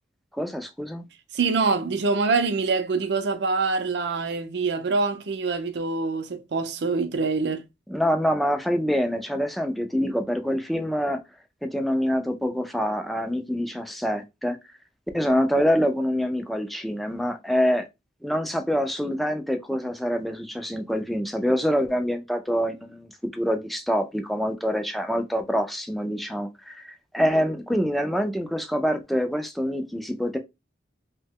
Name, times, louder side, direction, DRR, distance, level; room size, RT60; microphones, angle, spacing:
voice 1, 0.4-1.0 7.9-11.2 11.6-14.6 15.1-17.9 18.2-30.4, equal, ahead, 0.3 m, -25 dB
voice 2, 1.3-7.6, right 4 dB, 65° right, 0.5 m, -25 dB
2.8 x 2.1 x 3.4 m
head